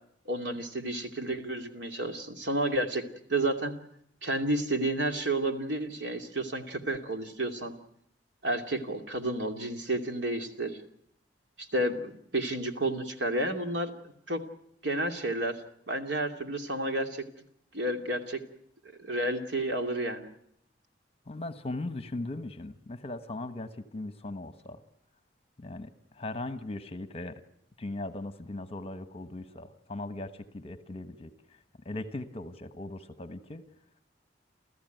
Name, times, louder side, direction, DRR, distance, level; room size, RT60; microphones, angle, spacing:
voice 1, 0.3-3.0 3.3-3.7 4.2-7.7 8.4-10.8 11.6-13.9 14.3-14.4 14.8-15.6 15.9-17.2 17.7-18.4 19.0-20.3, right 1 dB, 85° right, 5 dB, 2.7 m, -31 dB
voice 2, 21.3-24.8 25.6-25.9 26.2-27.3 27.8-31.3 31.8-33.6, left 2 dB, 35° left, 10 dB, 1.3 m, -38 dB
29.5 x 14.5 x 9.2 m, 0.70 s
head